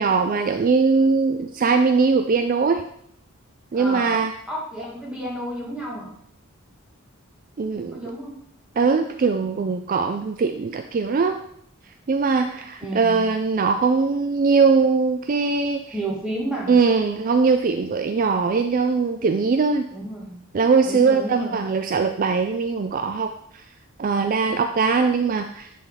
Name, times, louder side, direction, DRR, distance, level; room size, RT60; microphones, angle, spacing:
voice 1, 0.0-2.8 3.7-4.3 7.6-8.1 8.8-11.4 12.1-15.8 16.7-19.9 20.5-23.6 24.0-25.7, right 4 dB, 40° right, 7 dB, 0.3 m, -21 dB
voice 2, 3.7-4.2 4.5-6.1 7.9-8.3 12.8-13.3 15.9-16.8 19.9-20.4 20.8-21.6, right 1 dB, 5° right, -5 dB, 2.1 m, -31 dB
10.0 x 4.3 x 3.9 m, 0.71 s
head